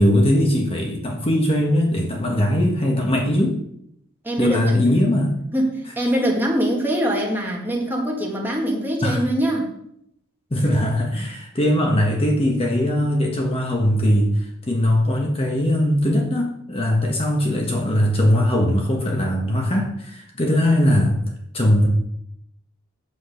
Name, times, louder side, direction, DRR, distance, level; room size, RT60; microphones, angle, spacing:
voice 1, 0.0-3.6 4.4-5.4 9.0-9.2 10.5-21.2 21.5-21.9, left 1 dB, 25° left, 1 dB, 1.2 m, -20 dB
voice 2, 4.2-4.7 5.5-9.7, equal, 10° right, -2 dB, 2.0 m, -23 dB
8.1 x 7.8 x 5.0 m, 0.74 s
head